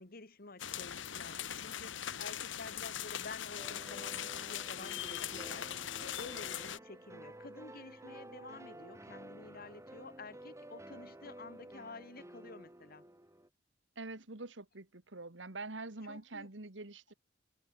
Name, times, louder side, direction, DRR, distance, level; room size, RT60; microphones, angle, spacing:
voice 1, 0.0-13.0 16.0-16.5, left 3 dB, 55° left, 2.2 m, -50 dB
sound 1, 0.6-6.8, left 10 dB, 80° left, 1.0 m, -41 dB
sound 2, 3.6-13.5, right 1 dB, 15° right, 6.1 m, -52 dB
voice 2, 14.0-17.1, right 3 dB, 75° right, 2.0 m, -45 dB
head